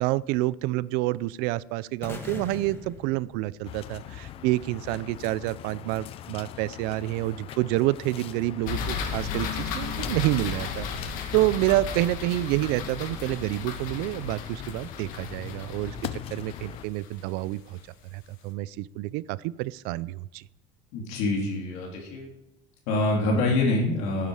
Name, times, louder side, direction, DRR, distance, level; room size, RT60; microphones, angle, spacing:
voice 1, 0.0-10.9 11.3-16.0 16.3-17.8 18.1-20.4, right 18 dB, 70° right, 20 dB, 0.5 m, -28 dB
sound 1, 2.0-4.1, left 3 dB, 15° left, 1.7 m, -41 dB
sound 2, 3.6-16.9, left 10 dB, 35° left, 0.5 m, -41 dB
sound 3, 8.7-17.8, left 6 dB, 55° left, 1.9 m, -35 dB
voice 2, 20.9-22.3 22.9-24.3, left 2 dB, 70° left, -1 dB, 3.1 m, -25 dB
18.0 x 9.6 x 4.9 m, 0.87 s
cardioid pair, 175°, 17 cm